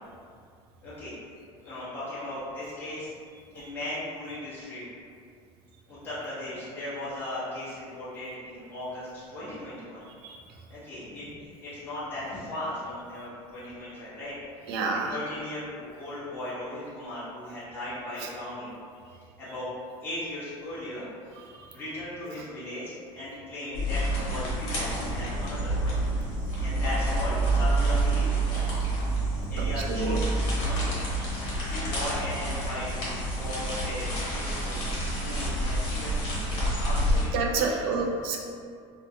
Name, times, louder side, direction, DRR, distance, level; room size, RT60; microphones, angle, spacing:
voice 1, 0.8-1.1 1.6-3.1 3.5-4.8 5.9-10.0 10.7-14.3 14.6-14.7 15.1-18.7 19.4-19.7 20.0-21.1 21.7-26.0 26.6-28.3 29.5-30.4 30.6-31.1 31.6-37.9, left 1 dB, 15° left, -11 dB, 0.6 m, -37 dB
voice 2, 14.7-15.2 18.2-18.3 21.5-21.7 28.6-28.7 29.8-30.2 30.6-30.7 37.3-38.4, right 4 dB, 70° right, 1 dB, 0.4 m, -29 dB
sound 1, 23.7-37.2, right 1 dB, 55° left, 1.0 m, -28 dB
2.5 x 2.2 x 2.6 m, 2.2 s
cardioid pair, 170°, 13 cm